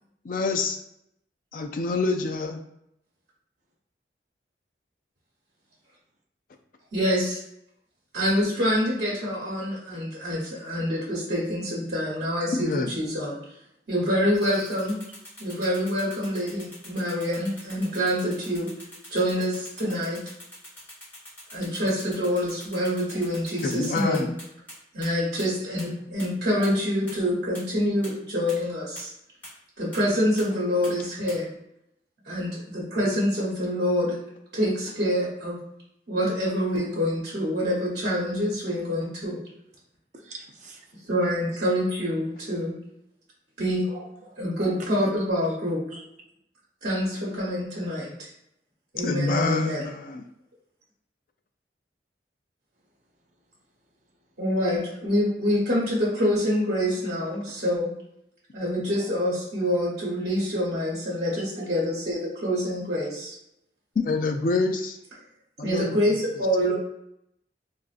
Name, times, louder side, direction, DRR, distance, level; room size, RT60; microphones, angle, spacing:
voice 1, 0.2-0.8 1.5-2.6 12.5-12.9 23.6-24.3 49.0-50.2 64.0-65.0 65.6-66.0, left 3 dB, 50° left, 5 dB, 0.3 m, -26 dB
voice 2, 6.9-7.4 8.1-12.7 12.9-13.6 13.9-15.0 15.4-18.7 19.1-20.2 21.5-24.3 24.9-29.1 29.8-31.5 32.2-34.2 34.5-35.6 36.1-39.4 41.0-42.7 43.6-43.8 44.4-45.8 46.8-48.3 48.9-49.9 54.4-57.9 58.5-63.3 65.6-66.8, equal, 60° right, -6 dB, 1.0 m, -26 dB
sound 1, 14.4-24.7 25.0-25.1 25.4-25.5 25.8-25.9 26.2-26.3 26.6-26.7 27.1-27.2 27.5-27.6 28.0-28.1 28.5-28.6 29.0-29.1 29.4-29.5 29.9-30.0 30.4-30.5 30.8-30.9 31.3-31.4, equal, 10° left, 1.3 m, -43 dB
voice 3, 40.2-40.8 43.9-44.7 45.9-46.0 66.6-66.7, equal, 40° right, 0 dB, 0.5 m, -40 dB
3.8 x 2.4 x 2.5 m, 0.79 s
head